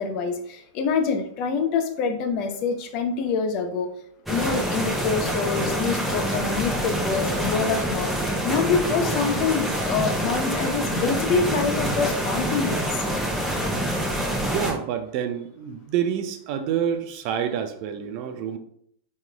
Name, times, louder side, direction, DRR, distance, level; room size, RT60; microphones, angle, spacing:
voice 1, 0.0-3.9 4.3-13.0, left 5 dB, 50° left, 7 dB, 0.6 m, -26 dB
sound 1, 4.3-14.7, equal, 5° right, 0.8 m, -26 dB
voice 2, 14.4-18.6, right 8 dB, 55° right, 8 dB, 0.5 m, -28 dB
3.8 x 3.1 x 2.3 m, 0.67 s
hypercardioid pair, 110°, 0 cm